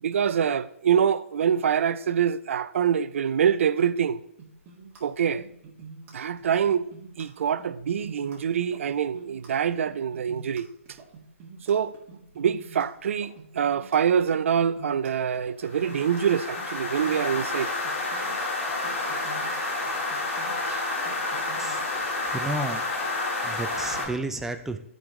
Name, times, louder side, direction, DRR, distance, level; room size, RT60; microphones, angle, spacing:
voice 1, 0.0-4.2 5.0-5.4 6.1-6.8 7.2-10.7 11.7-11.9 12.4-17.7 20.7-21.0, right 8 dB, 65° right, 0.4 m, -25 dB
sound 1, 4.4-22.3, right 4 dB, 25° right, 2.0 m, -47 dB
sound 2, 15.7-24.1, left 2 dB, 70° left, 3.1 m, -30 dB
voice 2, 22.3-22.9 23.4-24.8, right 2 dB, 5° right, 0.5 m, -32 dB
13.0 x 5.2 x 3.1 m
hypercardioid pair, 135°, 8 cm